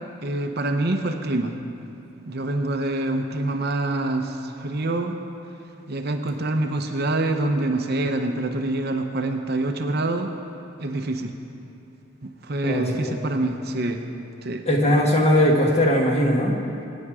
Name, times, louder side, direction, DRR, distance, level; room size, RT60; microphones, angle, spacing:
voice 1, 0.2-1.5 2.3-5.1 5.9-10.3 10.8-11.4 12.2-14.0 14.4-14.6, right 2 dB, 45° right, 4 dB, 0.8 m, -26 dB
voice 2, 12.6-13.2 14.6-16.6, equal, 30° left, 0 dB, 1.5 m, -20 dB
21.0 x 9.4 x 4.9 m, 2.7 s
head